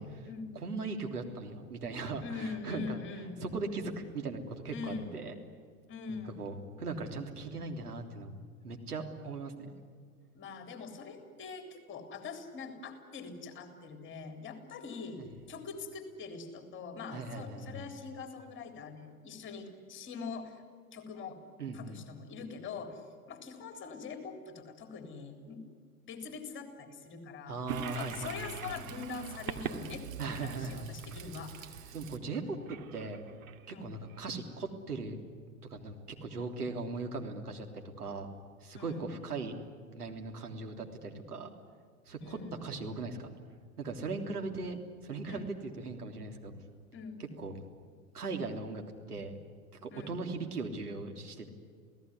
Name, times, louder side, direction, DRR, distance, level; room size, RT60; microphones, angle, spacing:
voice 1, 0.5-3.0 3.4-5.3 6.1-8.4 8.6-9.7 15.2-15.3 17.1-17.8 21.6-22.0 27.5-28.7 30.2-30.8 31.1-31.2 31.9-33.2 33.7-35.2 35.7-38.3 38.6-39.6 39.9-41.5 42.1-43.3 43.8-44.8 45.0-46.5 47.2-47.6 48.1-48.8 49.1-49.4 49.8-51.5, right 3 dB, 80° right, 3 dB, 3.4 m, -39 dB
voice 2, 2.2-3.5 4.7-5.1 5.9-6.4 10.3-15.2 15.5-20.6 20.9-21.4 21.7-23.0 23.3-25.6 26.1-27.6 27.9-31.5 33.7-33.9 38.7-39.1 42.2-42.6 45.3-45.6 46.9-47.2 49.9-50.2, left 5 dB, 25° left, 6 dB, 3.8 m, -43 dB
Toilet flush, 27.7-34.2, right 7 dB, 60° right, 2.2 m, -43 dB
28.5 x 18.0 x 9.8 m, 2.1 s
figure-of-eight pair, 95°, 45 cm